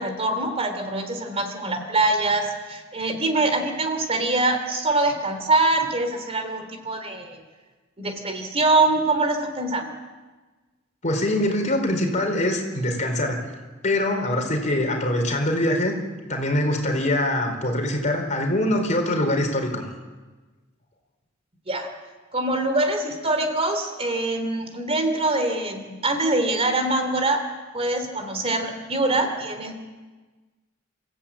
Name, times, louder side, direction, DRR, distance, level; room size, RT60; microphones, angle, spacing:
voice 1, 0.0-7.4 8.0-9.9 21.7-21.9 22.3-27.4 27.7-29.8, right 2 dB, 30° right, 6 dB, 2.8 m, -24 dB
voice 2, 11.0-13.4 13.8-15.9 16.3-19.8, left 1 dB, 40° left, 3 dB, 4.2 m, -23 dB
28.5 x 15.5 x 8.7 m, 1.3 s
head